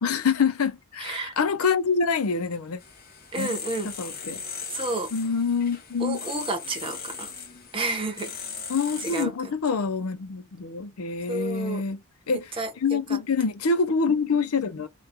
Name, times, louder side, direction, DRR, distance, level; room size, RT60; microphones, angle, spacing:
voice 1, 0.0-2.8 3.4-3.5 3.8-4.4 5.1-6.2 8.7-12.5 12.8-14.9, left 5 dB, 90° left, 0.6 m, -26 dB
voice 2, 1.0-1.3 3.3-3.9 4.7-5.1 6.0-7.3 7.7-8.3 9.0-9.3 11.3-11.8 12.6-13.2, right 2 dB, 25° right, 0.8 m, -31 dB
sound 1, 2.8-9.3, left 6 dB, 45° left, 0.9 m, -38 dB
3.0 x 2.2 x 3.5 m
head